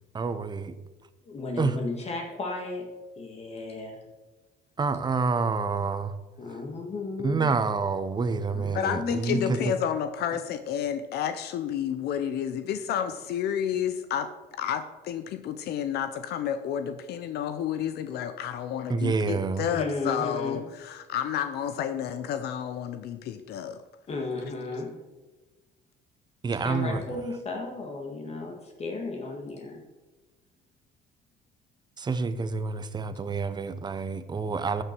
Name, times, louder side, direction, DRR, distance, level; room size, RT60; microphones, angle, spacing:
voice 1, 0.1-0.7 1.6-1.8 4.8-6.1 7.2-9.7 18.9-19.6 26.4-27.0 32.0-34.8, right 4 dB, 25° right, 12 dB, 0.8 m, -28 dB
voice 2, 1.2-2.9 3.2-4.0 6.4-7.5 8.5-9.6 19.7-20.6 24.1-24.9 26.6-29.8, left 3 dB, 40° left, 2 dB, 1.9 m, -34 dB
voice 3, 8.7-14.3 14.6-23.8, left 9 dB, 75° left, 10 dB, 0.7 m, -30 dB
14.0 x 6.7 x 4.5 m, 1.2 s
cardioid pair, 110°, 17 cm